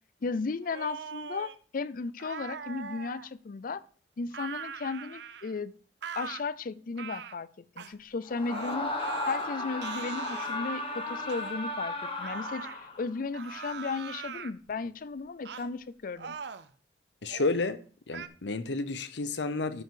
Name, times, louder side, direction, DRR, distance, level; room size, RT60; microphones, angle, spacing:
voice 1, 0.2-3.8 4.2-5.7 6.2-8.9 9.3-16.3, left 4 dB, 55° left, 0.5 m, -35 dB
sound 1, 0.6-1.6 2.2-3.3 4.3-5.6 6.0-6.4 7.0-7.4 7.8-7.9 8.5-9.5 9.8-10.6 11.3-11.5 12.2-12.8 13.3-14.5 15.4-15.7 16.1-16.7 17.2-17.6 18.1-18.3, right 6 dB, 70° right, 0.6 m, -41 dB
Screaming, 8.3-13.1, left 2 dB, 30° left, 1.4 m, -35 dB
voice 2, 17.2-17.8 18.1-19.8, left 3 dB, 85° left, 0.7 m, -31 dB
12.0 x 5.3 x 3.8 m
head